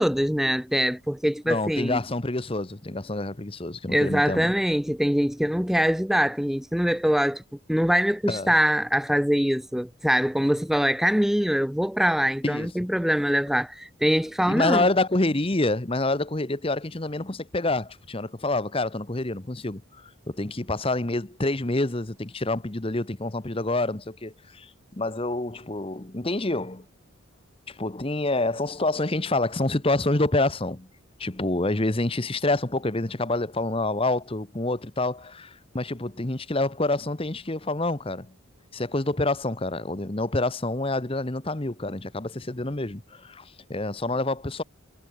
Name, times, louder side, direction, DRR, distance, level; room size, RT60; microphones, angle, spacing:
voice 1, 0.0-2.0 3.9-7.4 7.7-14.9, equal, ahead, 0.4 m, -23 dB
voice 2, 1.5-4.5 8.3-8.5 12.4-12.7 14.5-26.8 27.7-30.9 31.2-38.3 38.7-44.6, left 2 dB, 25° left, 1.0 m, -27 dB
head